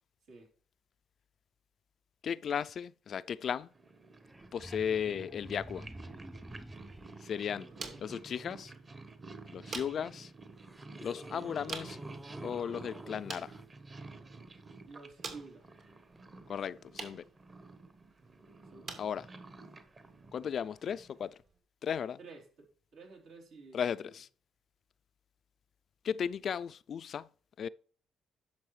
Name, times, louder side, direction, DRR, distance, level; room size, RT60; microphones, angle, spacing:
voice 1, 2.2-3.7 4.5-5.9 7.2-7.7 8.0-8.7 9.5-10.3 11.0-12.0 12.4-13.5 16.5-17.2 19.0-19.3 20.3-21.3 21.8-22.2 23.7-24.3 26.0-27.3 27.6-27.7, left 8 dB, 55° left, 0.3 m, -35 dB
Purr, 3.6-21.3, right 3 dB, 35° right, 1.3 m, -51 dB
sound 1, 3.9-4.0 4.1-7.3 9.8-9.9 10.5-13.6 16.2-16.3, right 1 dB, 10° right, 0.4 m, -49 dB
voice 2, 4.9-5.3 7.7-8.1 11.3-11.5 14.9-15.7 18.7-19.0 22.2-22.7 22.9-24.1, right 4 dB, 80° right, 3.4 m, -52 dB
sound 2, 6.6-21.6, right 4 dB, 60° right, 2.3 m, -50 dB
10.5 x 6.4 x 3.2 m
cardioid pair, 90°, 0 cm